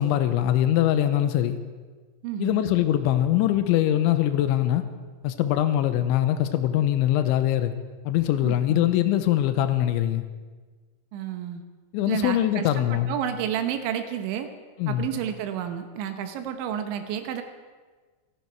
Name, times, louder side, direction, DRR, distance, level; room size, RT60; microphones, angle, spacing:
voice 1, 0.0-1.6 2.4-4.8 5.2-7.7 8.1-10.2 11.9-13.2 14.8-15.1, left 12 dB, 85° left, 10 dB, 3.1 m, -22 dB
voice 2, 2.2-2.6 8.4-8.9 11.1-11.6 12.1-14.5 14.9-17.4, right 9 dB, 80° right, 7 dB, 3.3 m, -31 dB
27.5 x 11.0 x 4.6 m, 1.4 s
omnidirectional pair, 5.4 m